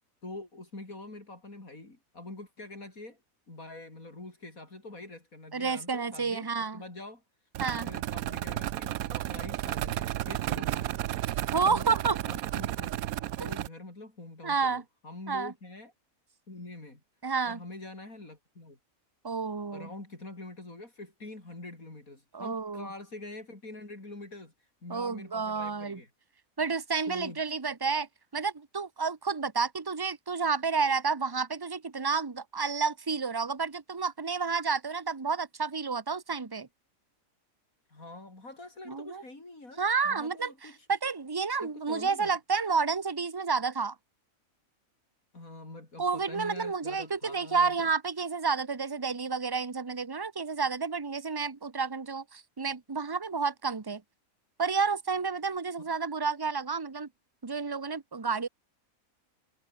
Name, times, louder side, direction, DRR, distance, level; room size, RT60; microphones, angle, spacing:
voice 1, 0.2-3.2 3.5-7.2 7.7-10.9 11.6-11.9 12.2-12.9 13.4-15.9 16.5-17.0 17.4-18.8 19.7-26.1 27.1-27.5 37.9-40.9 41.6-42.4 45.3-47.9, left 2 dB, 75° left, 6.1 m, -45 dB
voice 2, 5.5-6.8 7.6-7.9 11.5-12.2 13.4-13.5 14.4-14.8 15.3-15.5 17.2-17.6 19.2-19.9 22.3-22.9 24.9-26.0 26.6-28.1 28.3-36.7 38.9-39.2 39.8-43.9 46.0-54.0 54.6-57.1 57.4-58.5, right 5 dB, 20° right, 1.0 m, -30 dB
sound 1, 7.5-13.7, right 13 dB, 90° right, 1.1 m, -33 dB
omnidirectional pair, 1.5 m